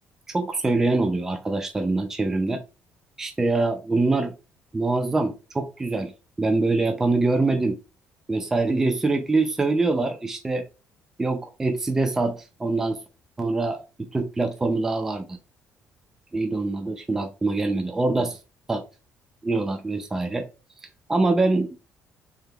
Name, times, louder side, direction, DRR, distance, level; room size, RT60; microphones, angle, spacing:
voice 1, 0.3-2.6 3.2-4.3 4.7-6.1 6.4-7.8 8.3-10.7 11.2-13.0 13.4-15.4 16.3-18.4 18.7-18.8 19.4-20.5 21.1-21.8, right 3 dB, 10° right, 7 dB, 0.3 m, -24 dB
3.4 x 2.9 x 3.5 m, 0.31 s
cardioid pair, 180°, 4 cm